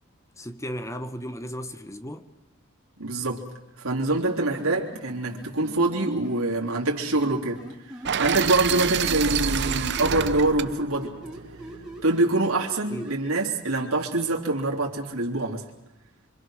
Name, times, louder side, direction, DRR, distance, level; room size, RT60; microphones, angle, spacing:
voice 1, 0.4-2.3 12.9-13.2, equal, 15° left, 1.2 m, -35 dB
voice 2, 3.0-3.4 3.8-11.1 12.0-15.6, right 2 dB, 85° right, 3.3 m, -25 dB
sound 1, 4.1-6.4 7.2-9.2 9.5-13.1, right 1 dB, 5° right, 5.7 m, -41 dB
sound 2, 8.0-12.1, right 7 dB, 55° right, 0.8 m, -28 dB
26.0 x 25.5 x 6.4 m
head